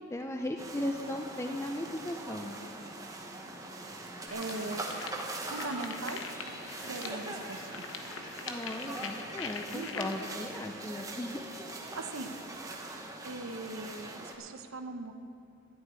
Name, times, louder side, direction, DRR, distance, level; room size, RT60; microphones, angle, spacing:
voice 1, 0.0-2.6 8.4-11.4, left 1 dB, 15° left, 4 dB, 0.5 m, -37 dB
sound 1, 0.6-14.4, right 2 dB, 15° right, 1.1 m, -42 dB
sound 2, 4.3-10.3, left 5 dB, 65° left, 1.0 m, -43 dB
voice 2, 4.3-4.8 5.4-6.2 6.9-7.8 9.7-10.1 11.9-12.4 13.2-15.1, right 2 dB, 75° right, 7 dB, 0.9 m, -40 dB
12.5 x 7.0 x 9.5 m, 2.5 s
head